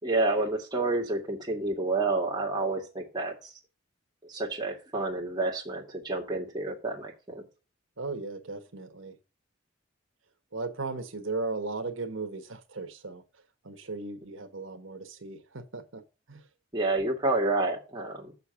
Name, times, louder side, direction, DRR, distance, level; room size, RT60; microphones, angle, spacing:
voice 1, 0.0-3.3 4.2-7.4 16.7-18.3, right 2 dB, 20° right, 2.2 m, -29 dB
voice 2, 8.0-9.1 10.5-13.2 13.6-16.0 16.3-16.4, right 3 dB, 85° right, 1.4 m, -36 dB
6.9 x 6.0 x 5.7 m
head